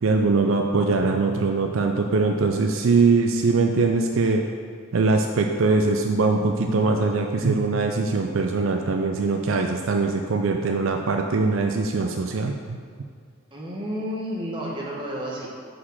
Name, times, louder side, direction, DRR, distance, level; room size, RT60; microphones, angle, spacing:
voice 1, 0.0-4.4 4.9-12.8, right 3 dB, 70° right, 3 dB, 0.5 m, -22 dB
voice 2, 13.5-15.5, equal, 20° right, -4 dB, 1.3 m, -31 dB
6.3 x 5.0 x 5.6 m, 2.2 s
head